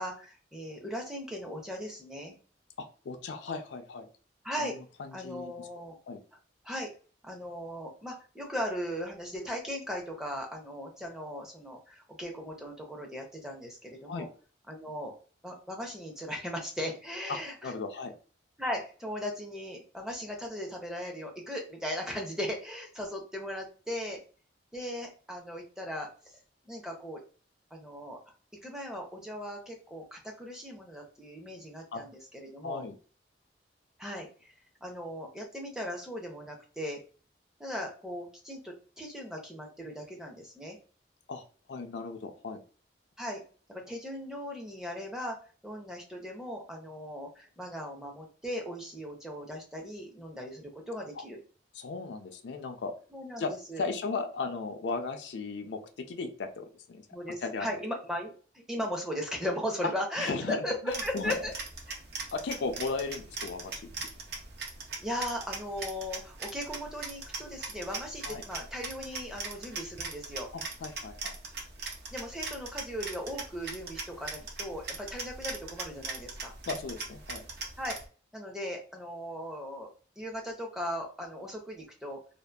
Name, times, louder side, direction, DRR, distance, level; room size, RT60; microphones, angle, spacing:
voice 1, 0.0-2.4 4.4-4.8 5.1-5.9 6.6-6.9 7.2-14.3 14.7-15.1 15.4-17.7 18.6-24.2 24.7-26.4 26.7-27.2 27.7-28.2 28.6-32.8 34.0-34.5 34.8-37.0 37.6-40.8 43.2-43.4 43.7-45.4 45.6-51.4 53.1-53.4 53.7-53.9 57.1-60.8 61.0-61.5 61.9-62.0 65.0-70.5 72.1-76.5 77.8-78.0 78.3-79.9 80.2-82.2, equal, 5° right, 1 dB, 0.5 m, -38 dB
voice 2, 2.8-4.1 4.6-4.7 5.0-5.7 6.1-6.2 14.1-14.3 17.3-18.1 31.9-32.0 32.6-33.0 41.3-41.4 41.7-42.6 51.2-51.3 51.7-52.9 53.4-57.1 57.4-57.7 59.8-59.9 60.2-61.4 62.3-63.9 68.3-68.4 70.5-71.3 76.7-77.5, left 4 dB, 70° left, 6 dB, 0.4 m, -36 dB
sound 1, 60.9-78.0, right 4 dB, 60° right, 0.5 m, -41 dB
2.6 x 2.3 x 2.2 m, 0.38 s
head